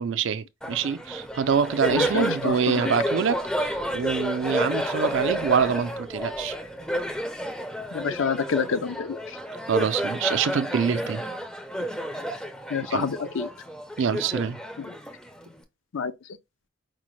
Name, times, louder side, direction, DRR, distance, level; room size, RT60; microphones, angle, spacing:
voice 1, 0.0-6.6 9.7-11.2 12.9-13.1 14.0-14.6, right 6 dB, 65° right, 0.4 m, -25 dB
Laughter, 0.6-15.6, equal, 5° left, 0.4 m, -31 dB
voice 2, 1.9-2.9 7.9-9.2 12.7-13.5 14.8-14.9 15.9-16.1, left 6 dB, 70° left, 0.4 m, -28 dB
4.9 x 2.1 x 3.0 m
head